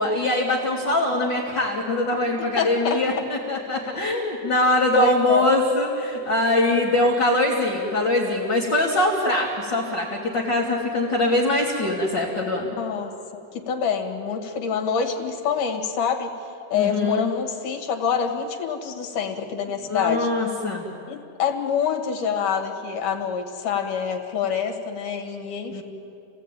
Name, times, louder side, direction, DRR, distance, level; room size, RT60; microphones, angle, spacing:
voice 1, 0.0-12.8 16.7-17.3 19.9-20.9 25.7-25.8, left 1 dB, 35° left, -5 dB, 2.8 m, -22 dB
voice 2, 2.4-3.0 5.0-5.5 12.6-16.3 16.7-20.3 21.1-25.8, left 6 dB, 80° left, 3 dB, 3.5 m, -26 dB
28.0 x 17.5 x 9.1 m, 2.6 s
omnidirectional pair, 3.7 m